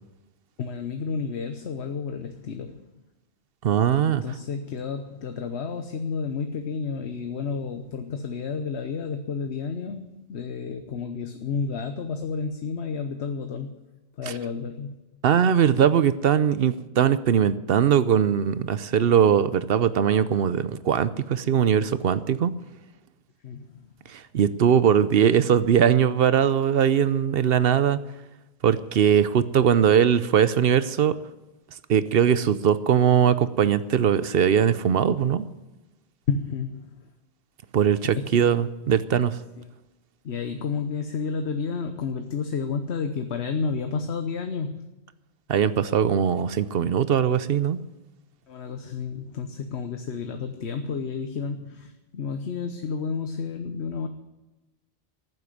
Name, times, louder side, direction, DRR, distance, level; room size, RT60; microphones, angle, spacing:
voice 1, 0.6-2.8 4.1-13.7 14.2-14.9 23.4-23.7 36.3-36.9 38.0-38.5 39.6-39.7 40.2-44.9 48.5-54.1, left 5 dB, 90° left, 7 dB, 1.2 m, -31 dB
voice 2, 3.6-4.2 14.3-14.4 15.2-22.5 24.1-28.0 28.6-31.2 31.9-35.5 37.7-39.4 45.5-47.8, right 8 dB, 65° right, 15 dB, 0.9 m, -21 dB
14.5 x 7.8 x 9.8 m, 1.1 s
omnidirectional pair, 1.1 m